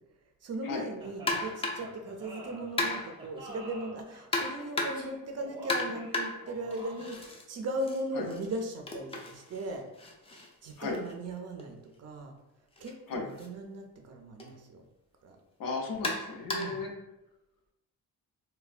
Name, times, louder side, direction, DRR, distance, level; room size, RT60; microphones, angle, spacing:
voice 1, 0.4-9.8 10.6-12.3 12.8-14.8 15.2-15.4 16.5-16.8, right 1 dB, 45° right, 4 dB, 0.4 m, -38 dB
sound 1, 1.0-7.3, right 1 dB, 15° right, 0.7 m, -47 dB
sound 2, 1.3-2.0 2.8-3.3 4.3-5.2 5.7-7.4 7.8-11.6 12.7-12.9 13.4-13.5 14.4-14.5 16.0-16.9, left 2 dB, 15° left, 0.3 m, -35 dB
voice 2, 15.6-16.9, left 3 dB, 70° left, 2 dB, 0.6 m, -35 dB
3.2 x 2.2 x 2.3 m, 0.97 s
cardioid pair, 125°, 36 cm